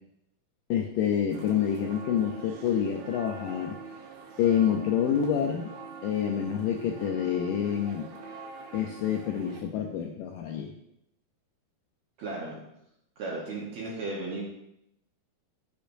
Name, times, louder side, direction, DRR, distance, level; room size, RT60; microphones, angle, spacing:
voice 1, 0.7-3.8 4.4-5.7 6.0-8.1 8.7-10.7, left 9 dB, 85° left, 2 dB, 1.9 m, -27 dB
sound 1, 1.3-9.6, right 5 dB, 90° right, 3.0 m, -44 dB
voice 2, 12.2-12.6 13.2-14.4, right 2 dB, 65° right, -4 dB, 1.9 m, -35 dB
10.0 x 6.7 x 2.6 m, 0.81 s
omnidirectional pair, 4.4 m